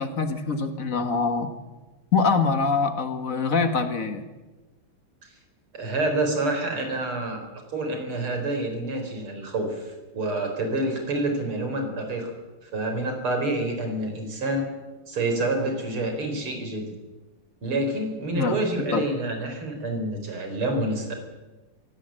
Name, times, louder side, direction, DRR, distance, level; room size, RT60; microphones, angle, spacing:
voice 1, 0.0-1.5 2.1-4.3 18.3-18.6 18.9-19.1, left 4 dB, 40° left, 9 dB, 1.8 m, -24 dB
voice 2, 5.7-7.4 7.7-12.3 12.6-14.6 15.1-16.9 17.6-21.1, right 2 dB, 85° right, 5 dB, 5.0 m, -28 dB
22.5 x 17.0 x 7.7 m, 1.2 s
omnidirectional pair, 2.3 m